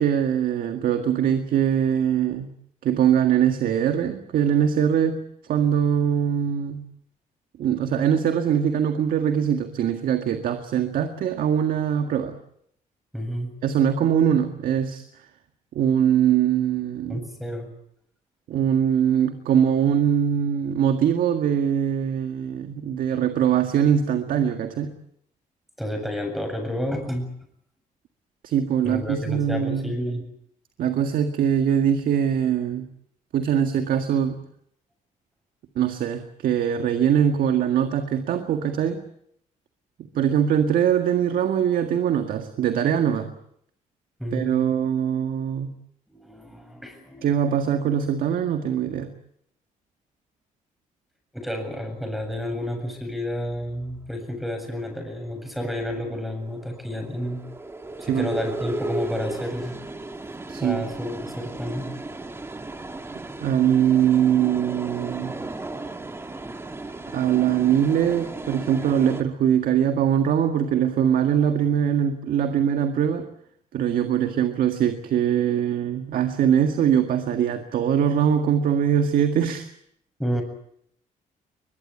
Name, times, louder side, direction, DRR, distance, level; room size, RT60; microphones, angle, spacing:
voice 1, 0.0-2.5 2.8-5.2 5.5-6.8 7.6-12.3 13.6-15.0 15.8-17.3 18.5-24.9 28.4-29.9 30.8-32.9 33.3-34.4 35.8-39.0 40.2-43.3 44.3-45.7 47.2-49.1 58.1-58.3 60.5-60.9 63.4-65.3 67.1-73.2 73.7-79.7, right 9 dB, 80° right, 7 dB, 1.9 m, -22 dB
voice 2, 13.1-13.5 17.1-17.7 25.8-27.3 28.8-30.2 44.2-44.6 46.1-47.6 51.3-57.4 58.0-59.7 60.6-61.9 80.2-80.4, equal, ahead, 5 dB, 7.7 m, -30 dB
sound 1, 55.1-69.2, right 2 dB, 15° right, 1.9 m, -35 dB
22.5 x 21.5 x 8.5 m, 0.70 s
cardioid pair, 110°, 14 cm